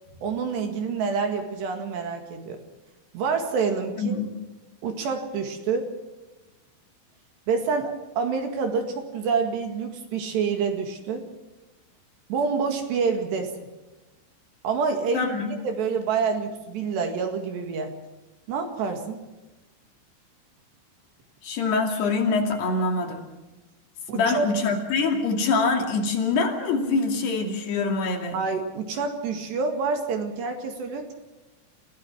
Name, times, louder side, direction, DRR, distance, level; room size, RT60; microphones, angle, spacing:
voice 1, 0.2-2.6 3.1-4.2 4.8-5.9 7.5-11.3 12.3-13.5 14.6-15.3 15.6-17.9 18.5-19.2 24.1-24.5 28.3-31.1, right 5 dB, 65° right, 5 dB, 3.8 m, -27 dB
voice 2, 4.0-4.3 15.1-15.5 21.4-23.2 24.1-28.4, left 4 dB, 60° left, 2 dB, 4.3 m, -24 dB
30.0 x 17.0 x 6.2 m, 1.1 s
omnidirectional pair, 5.8 m